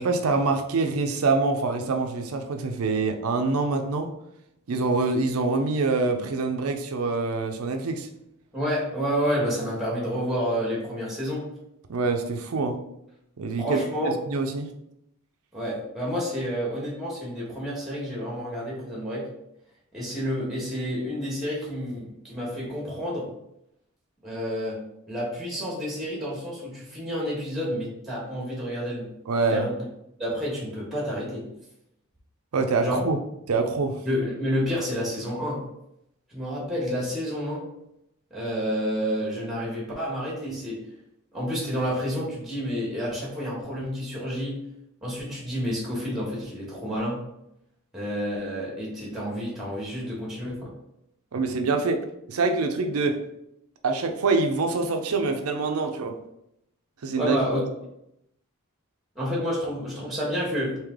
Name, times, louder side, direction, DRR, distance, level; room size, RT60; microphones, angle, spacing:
voice 1, 0.0-4.1 4.7-8.1 11.9-12.8 13.4-14.7 29.3-29.7 32.5-33.2 33.5-34.0 51.3-53.2 53.8-56.2 57.0-57.4, right 3 dB, 75° right, 5 dB, 0.5 m, -25 dB
voice 2, 8.5-11.5 13.6-14.2 15.5-19.3 19.9-23.3 24.2-24.8 25.1-29.1 29.4-29.8 30.2-31.5 32.8-33.0 34.0-35.7 36.3-37.6 38.3-40.8 41.3-44.6 45.0-47.2 47.9-50.7 57.2-57.6 59.1-60.8, equal, ahead, -5 dB, 1.2 m, -29 dB
3.2 x 2.9 x 3.6 m, 0.81 s
head